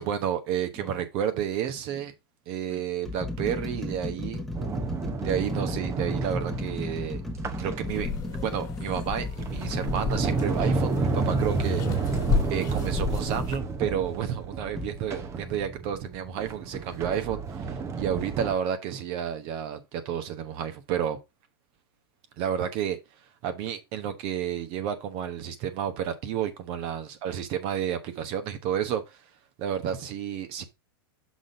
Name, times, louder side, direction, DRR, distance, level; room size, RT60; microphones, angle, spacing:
voice 1, 0.0-2.1 2.5-4.5 5.2-7.2 7.6-8.1 8.4-11.8 12.5-21.2 22.4-23.0 23.4-29.2 29.6-30.6, right 9 dB, 45° right, 1.0 m, -31 dB
sound 1, 0.8-1.0 1.9-2.0 2.7-14.0 14.8-14.9, left 2 dB, ahead, 1.2 m, -36 dB
Sliding door, 4.5-8.3 9.0-18.6, right 4 dB, 20° right, 0.9 m, -31 dB
sound 2, 7.9-13.6, left 5 dB, 30° left, 1.7 m, -33 dB
6.2 x 3.8 x 4.9 m
hypercardioid pair, 120°, 13 cm